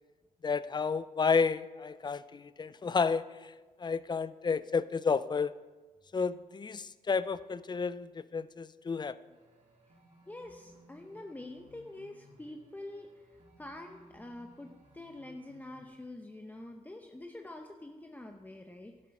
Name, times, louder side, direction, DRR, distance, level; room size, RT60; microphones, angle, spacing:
voice 1, 0.4-3.5 3.8-5.5 6.1-9.2, left 5 dB, 30° left, 15 dB, 0.5 m, -31 dB
sound 1, 9.3-15.9, equal, 45° right, 4.3 m, -60 dB
voice 2, 10.3-18.9, left 1 dB, 10° left, 3 dB, 0.8 m, -46 dB
12.0 x 7.8 x 5.9 m, 1.3 s
cardioid pair, 90°, 15 cm